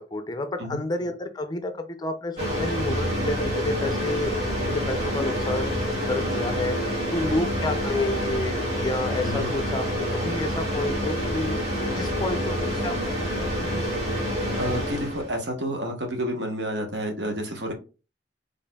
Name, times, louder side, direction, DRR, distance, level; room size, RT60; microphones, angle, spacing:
voice 1, 0.1-5.7 6.1-11.6 12.0-13.9, left 2 dB, 25° left, 8 dB, 0.4 m, -30 dB
sound 1, 2.4-15.4, equal, 40° right, 2.2 m, -27 dB
voice 2, 9.2-9.5 14.6-17.7, equal, 75° right, 3 dB, 1.0 m, -30 dB
4.2 x 3.3 x 2.2 m, 0.33 s
head